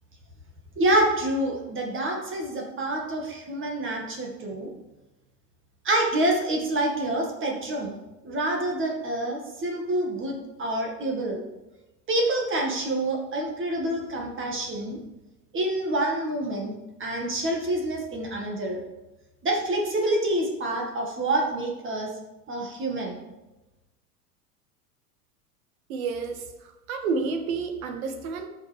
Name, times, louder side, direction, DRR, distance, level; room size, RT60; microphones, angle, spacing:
voice 1, 0.8-4.7 5.8-8.0 8.2-11.4 12.1-15.0 15.5-16.7 17.0-18.8 19.4-22.1 22.5-23.2, right 1 dB, 25° right, 0 dB, 1.9 m, -27 dB
voice 2, 25.9-28.5, right 4 dB, 60° right, 6 dB, 1.6 m, -30 dB
14.0 x 5.6 x 3.4 m, 1.1 s
hypercardioid pair, 100°, 47 cm